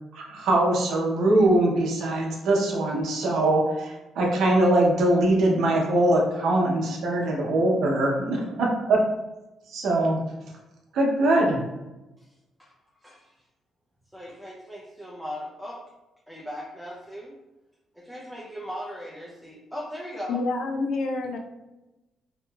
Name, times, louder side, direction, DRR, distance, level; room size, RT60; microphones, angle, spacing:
voice 1, 0.1-9.0 9.7-10.2 10.9-11.6, right 1 dB, 75° right, -1 dB, 0.7 m, -22 dB
voice 2, 13.0-13.3 14.1-15.8 16.3-17.3 17.9-20.4, equal, ahead, -4 dB, 0.5 m, -38 dB
voice 3, 20.3-21.4, left 3 dB, 75° left, 2 dB, 0.4 m, -27 dB
2.8 x 2.7 x 2.2 m, 1.0 s
cardioid pair, 90°, 0 cm